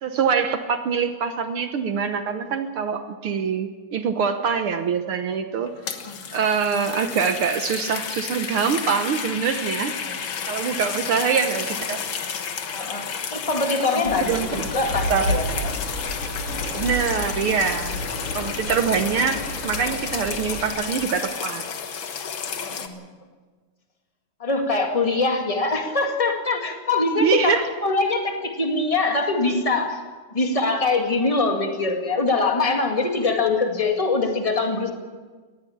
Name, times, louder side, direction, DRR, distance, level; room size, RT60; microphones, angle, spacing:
voice 1, 0.0-5.7 6.3-9.9 10.5-12.0 13.9-14.6 15.1-15.3 16.7-18.0 18.3-19.4 19.6-21.6 27.2-27.7, right 6 dB, 75° right, 7 dB, 1.2 m, -24 dB
sound 1, 5.6-22.9, left 7 dB, 55° left, 1.5 m, -32 dB
voice 2, 5.9-6.2 10.0-10.2 12.6-15.7 22.6-23.0 24.4-30.0 30.3-34.9, left 3 dB, 15° left, 3 dB, 1.5 m, -23 dB
sound 2, 14.1-20.7, left 1 dB, 70° left, 5.6 m, -31 dB
20.5 x 15.5 x 8.7 m, 1.4 s
omnidirectional pair, 3.8 m